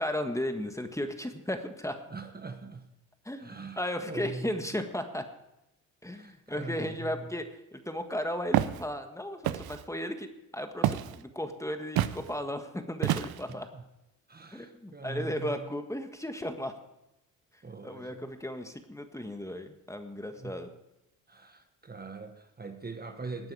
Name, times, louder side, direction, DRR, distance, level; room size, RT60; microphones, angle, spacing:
voice 1, 0.0-2.0 3.2-5.3 6.0-13.7 14.5-16.7 17.8-20.7, left 1 dB, 10° left, 6 dB, 1.6 m, -35 dB
voice 2, 2.1-2.9 3.4-3.8 4.1-4.6 6.1-7.3 13.5-13.8 14.3-15.7 17.6-18.3 20.4-20.6 21.3-23.5, right 4 dB, 25° right, 6 dB, 1.3 m, -42 dB
Walk footsteps, 8.5-8.8 9.4-9.8 10.8-11.2 12.0-12.2 13.0-13.5, right 13 dB, 75° right, 0.7 m, -27 dB
17.5 x 9.4 x 4.9 m, 0.91 s
supercardioid pair, 65°, 37 cm